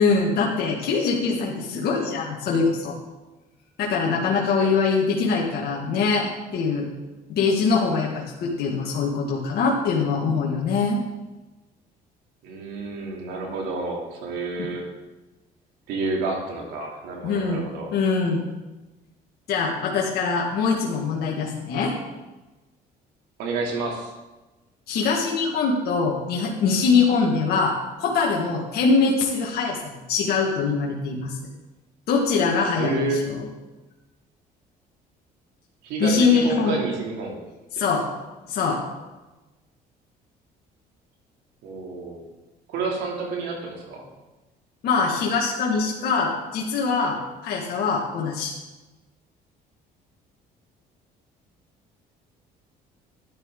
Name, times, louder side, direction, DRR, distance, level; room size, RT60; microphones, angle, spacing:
voice 1, 0.0-2.9 3.8-6.9 7.3-8.1 8.4-11.0 14.6-14.7 17.2-17.6 17.9-18.4 19.5-21.9 24.9-27.7 28.0-29.8 30.1-31.4 32.1-33.0 36.0-36.8 37.7-38.0 38.5-38.8 44.8-47.2 47.4-48.5, left 4 dB, 70° left, -3 dB, 2.0 m, -23 dB
voice 2, 4.3-4.8 12.4-14.9 15.9-17.9 23.4-24.1 32.8-33.3 35.8-37.4 37.7-38.0 41.6-42.3 42.7-44.1, right 3 dB, 90° right, -1 dB, 2.9 m, -30 dB
12.5 x 11.0 x 3.8 m, 1.1 s
cardioid pair, 110°, 17 cm